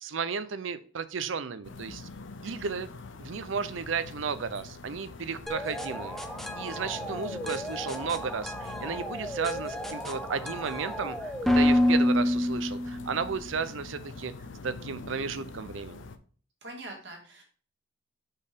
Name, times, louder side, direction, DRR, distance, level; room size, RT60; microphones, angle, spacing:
voice 1, 0.0-2.1 2.4-2.9 3.2-6.2 6.6-14.3 14.6-16.0, right 5 dB, 75° right, 13 dB, 0.6 m, -34 dB
sound 1, 1.6-16.2, left 3 dB, 70° left, 0.6 m, -45 dB
sound 2, 5.5-13.3, left 1 dB, ahead, 0.5 m, -29 dB
voice 2, 16.6-17.4, right 2 dB, 60° right, -1 dB, 2.2 m, -43 dB
5.3 x 4.3 x 5.2 m, 0.43 s
head